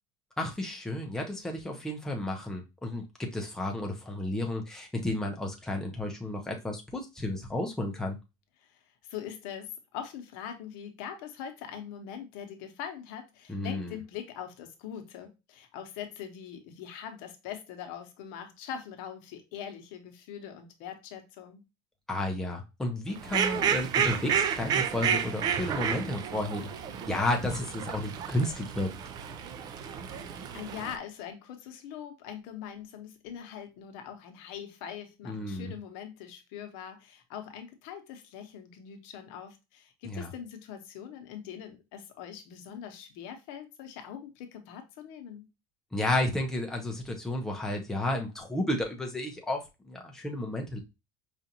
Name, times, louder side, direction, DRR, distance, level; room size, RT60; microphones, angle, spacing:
voice 1, 0.4-8.2 13.5-14.0 22.1-26.6 27.1-28.9 35.2-35.7 40.0-40.3 45.9-50.8, left 1 dB, 5° left, 1 dB, 0.6 m, -32 dB
voice 2, 8.6-21.6 29.8-30.0 30.5-45.4, left 9 dB, 75° left, 6 dB, 0.9 m, -42 dB
Fowl, 23.2-31.0, right 7 dB, 35° right, 0.4 m, -31 dB
5.0 x 2.5 x 2.8 m, 0.25 s
cardioid pair, 160°, 12 cm